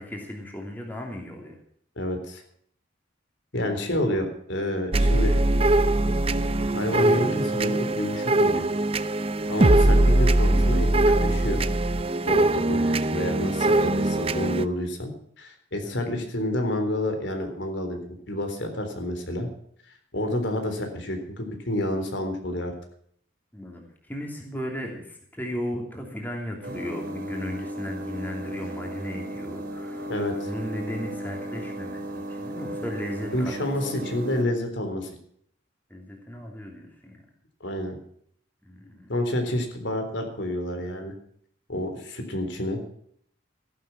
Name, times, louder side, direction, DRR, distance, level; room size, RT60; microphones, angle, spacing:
voice 1, 0.0-1.6 3.5-3.9 9.7-10.0 12.7-13.0 15.8-16.0 23.5-30.1 30.5-33.7 35.9-37.2 38.6-39.1 39.5-39.6, left 1 dB, 10° left, 0 dB, 3.0 m, -36 dB
voice 2, 2.0-2.4 3.5-5.3 6.7-8.7 9.5-11.6 12.3-15.1 15.4-18.0 18.3-19.5 20.1-22.7 30.1-30.5 33.3-35.1 37.6-38.0 39.1-41.1 41.7-42.8, left 1 dB, 65° left, 5 dB, 3.8 m, -29 dB
sound 1, 4.9-14.7, right 2 dB, 30° right, 0.6 m, -21 dB
sound 2, 26.6-34.4, right 1 dB, 45° right, 3.3 m, -35 dB
15.5 x 11.5 x 6.0 m, 0.63 s
head